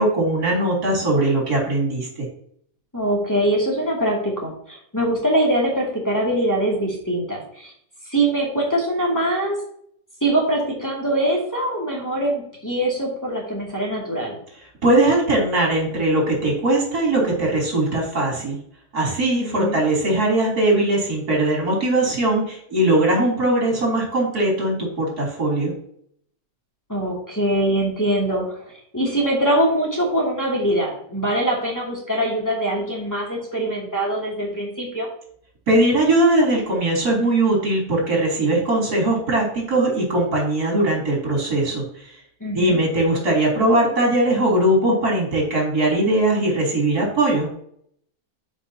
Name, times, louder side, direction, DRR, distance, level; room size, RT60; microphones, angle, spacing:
voice 1, 0.0-2.3 14.8-18.6 18.9-25.7 35.7-41.8 42.5-47.5, right 1 dB, 80° right, -2 dB, 3.8 m, -20 dB
voice 2, 2.9-7.7 8.1-9.6 10.2-14.4 19.4-19.8 26.9-28.6 28.9-35.1 42.4-42.8, right 1 dB, 10° left, -4 dB, 2.5 m, -23 dB
12.0 x 5.2 x 2.8 m, 0.66 s
omnidirectional pair, 1.6 m